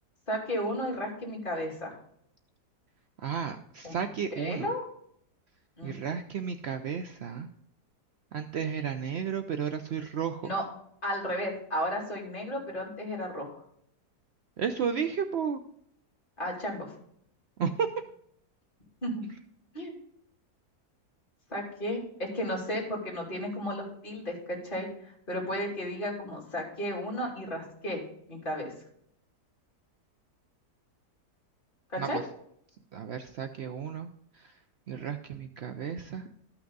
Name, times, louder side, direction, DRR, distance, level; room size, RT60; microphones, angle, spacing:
voice 1, 0.3-2.0 3.8-4.0 4.4-4.8 5.8-6.0 10.4-10.6 11.0-13.5 16.4-16.9 19.0-19.2 19.7-20.0 21.5-28.0 28.3-28.7 31.9-32.2, equal, 30° left, -2 dB, 3.0 m, -33 dB
voice 2, 3.2-4.7 5.8-7.5 8.3-10.5 14.6-15.6 17.6-17.9 32.0-32.2 32.9-34.1 34.4-34.5 34.9-36.3, right 7 dB, 85° right, 8 dB, 0.5 m, -33 dB
12.5 x 5.9 x 3.9 m, 0.70 s
omnidirectional pair, 1.8 m